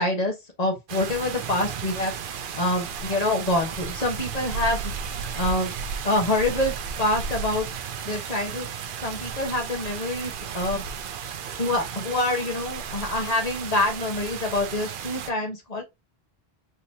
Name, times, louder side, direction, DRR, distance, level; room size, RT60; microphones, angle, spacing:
voice 1, 0.0-4.9 5.4-5.7 6.0-7.7 8.0-8.7 9.0-10.8 11.6-15.8, left 2 dB, 40° left, 1.2 m, -26 dB
sound 1, 0.9-15.3, right 6 dB, 60° right, 0.7 m, -34 dB
3.8 x 2.9 x 2.7 m
omnidirectional pair, 1.1 m